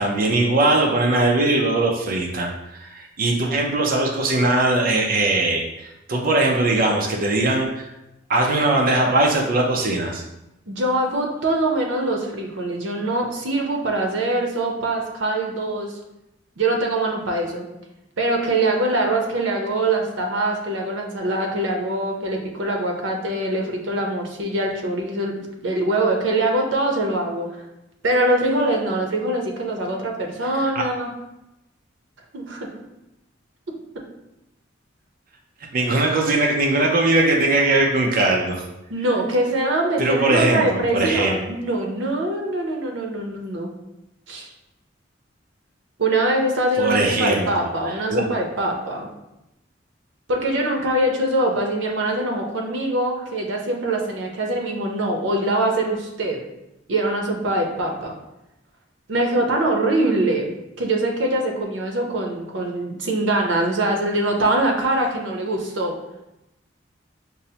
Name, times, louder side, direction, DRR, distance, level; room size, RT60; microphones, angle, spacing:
voice 1, 0.0-7.9 8.3-10.2 30.6-30.7 35.7-38.6 40.0-41.4 46.8-48.2, right 2 dB, 50° right, 0 dB, 0.4 m, -20 dB
voice 2, 10.7-16.0 16.6-17.7 18.2-27.6 28.0-31.1 32.3-32.7 38.9-43.7 44.3-44.5 46.0-49.1 50.3-56.4 56.9-58.1 59.1-60.5 60.8-65.9, right 1 dB, 90° right, 1 dB, 0.7 m, -23 dB
5.3 x 2.0 x 2.7 m, 0.90 s
head